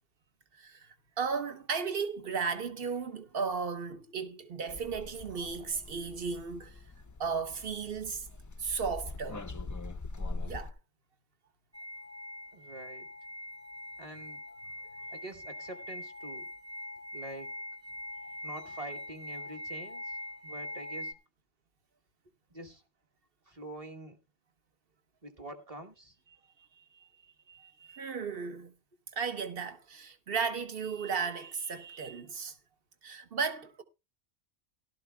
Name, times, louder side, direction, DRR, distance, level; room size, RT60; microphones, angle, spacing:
voice 1, 0.6-0.9 1.2-6.8 7.2-8.3 8.6-9.5 10.4-10.7 27.5-28.7 29.1-32.5 33.0-33.8, right 5 dB, 55° right, 1.2 m, -35 dB
sound 1, 4.7-10.7, left 3 dB, 25° left, 0.4 m, -42 dB
sound 2, 11.7-21.1, left 1 dB, 15° right, 0.7 m, -43 dB
voice 2, 12.5-13.1 14.0-14.4 15.1-16.5 17.1-17.6 18.4-20.2 20.4-21.1 22.5-22.8 23.5-24.2 25.2-26.1, right 2 dB, 30° right, 1.1 m, -45 dB
17.0 x 12.0 x 2.2 m
omnidirectional pair, 1.2 m